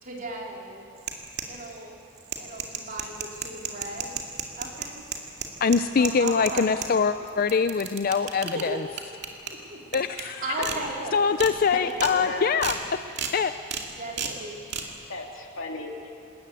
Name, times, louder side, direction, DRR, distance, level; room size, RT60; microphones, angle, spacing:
voice 1, 0.0-0.9 1.5-1.9 2.4-4.1 4.5-5.0 6.0-6.8 8.4-8.8 9.5-9.8 10.2-11.2 13.9-14.7, right 2 dB, 45° right, -1 dB, 3.2 m, -36 dB
sound 1, 1.0-1.8 2.2-6.9 7.3-8.6 9.0-9.5 9.9-10.2 10.6-10.8 11.2-11.5 11.9-12.1 12.6-12.8 13.1-13.3 13.7-13.8 14.2-14.3 14.7-14.8, right 7 dB, 60° right, 2.2 m, -32 dB
voice 2, 5.6-8.9 9.9-10.4 11.1-12.7 13.3-13.5, left 5 dB, 45° left, 10 dB, 0.5 m, -23 dB
voice 3, 9.2-10.0 10.2-10.7 11.6-12.5 14.8-16.1, left 3 dB, 75° left, 1 dB, 2.8 m, -36 dB
26.5 x 13.5 x 9.2 m, 2.5 s
head